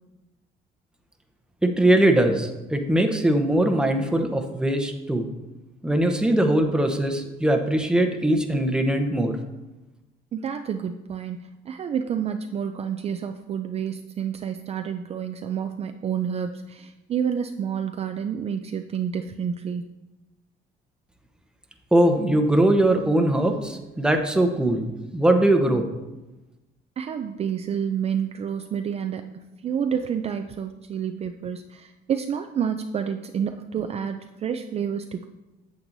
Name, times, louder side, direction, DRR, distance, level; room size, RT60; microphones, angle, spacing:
voice 1, 1.6-5.3 5.8-9.4 21.9-25.9, right 1 dB, 5° right, 5 dB, 0.9 m, -21 dB
voice 2, 10.3-19.9 27.0-35.2, right 8 dB, 40° right, 6 dB, 0.4 m, -29 dB
8.7 x 7.8 x 2.7 m, 1.0 s
cardioid pair, 110°, 17 cm